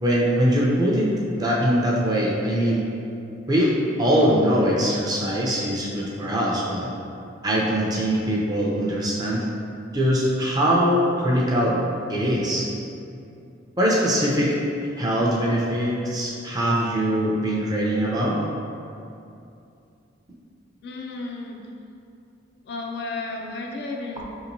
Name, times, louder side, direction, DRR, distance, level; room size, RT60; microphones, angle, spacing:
voice 1, 0.0-2.8 3.5-6.9 7.4-9.4 9.9-11.8 12.1-12.7 13.8-14.6 15.0-18.4, equal, 20° right, -4 dB, 0.5 m, -22 dB
voice 2, 20.8-21.6 22.7-24.2, left 3 dB, 55° left, 0 dB, 0.4 m, -33 dB
4.9 x 2.9 x 2.6 m, 2.6 s
head